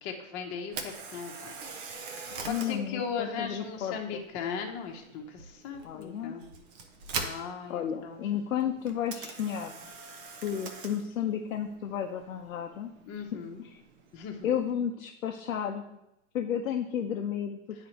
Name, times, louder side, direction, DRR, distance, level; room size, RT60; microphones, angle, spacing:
voice 1, 0.0-1.6 1.9-6.4 7.2-8.2 13.1-13.6 14.1-14.4, left 6 dB, 35° left, 2 dB, 1.0 m, -38 dB
Camera, 0.6-14.7, right 4 dB, 20° right, 0.4 m, -44 dB
voice 2, 2.5-4.2 5.8-6.4 7.7-9.8 10.4-12.9 13.3-13.8 14.4-16.0 16.3-17.6, left 9 dB, 80° left, 2 dB, 0.7 m, -32 dB
9.4 x 4.1 x 3.0 m, 0.88 s
hypercardioid pair, 130°, 41 cm